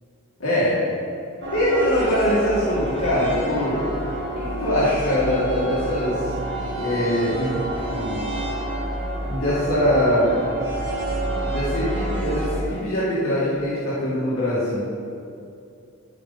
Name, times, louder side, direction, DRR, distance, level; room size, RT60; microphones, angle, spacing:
voice 1, 0.4-0.8 1.5-3.8 4.4-8.3 9.2-10.4 11.4-14.8, left 1 dB, 90° left, -10 dB, 2.1 m, -23 dB
sound 1, 1.4-12.6, right 1 dB, 55° right, 1.6 m, -28 dB
12.0 x 5.0 x 4.1 m, 2.5 s
head